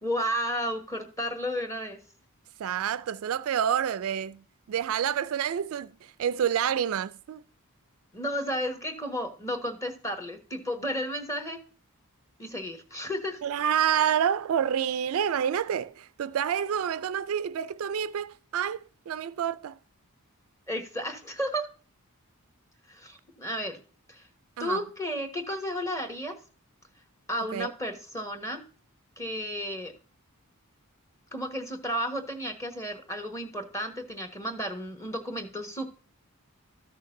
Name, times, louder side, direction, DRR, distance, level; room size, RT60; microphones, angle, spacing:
voice 1, 0.0-2.0 8.1-11.6 12.4-13.4 20.7-21.7 22.9-23.8 24.1-24.2 24.6-26.3 27.3-28.6 29.2-29.9 31.3-35.9, equal, 15° left, 1.2 m, -33 dB
voice 2, 2.6-7.4 13.4-18.8 19.1-19.8 24.6-24.8 27.5-27.7, right 8 dB, 65° right, 0.3 m, -28 dB
13.5 x 6.5 x 2.6 m
head